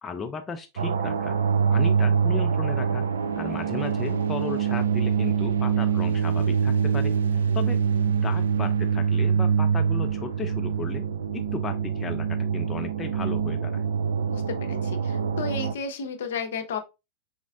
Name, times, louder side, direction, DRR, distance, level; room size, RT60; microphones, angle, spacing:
voice 1, 0.0-1.4 1.7-3.0 3.4-7.2 7.5-11.0 11.3-13.8, left 5 dB, 20° left, 0.4 m, -35 dB
sound 1, 0.8-15.7, right 7 dB, 65° right, 0.3 m, -24 dB
voice 2, 14.7-16.8, left 5 dB, 60° left, 0.6 m, -33 dB
4.2 x 4.0 x 2.3 m
figure-of-eight pair, 90°, 0 cm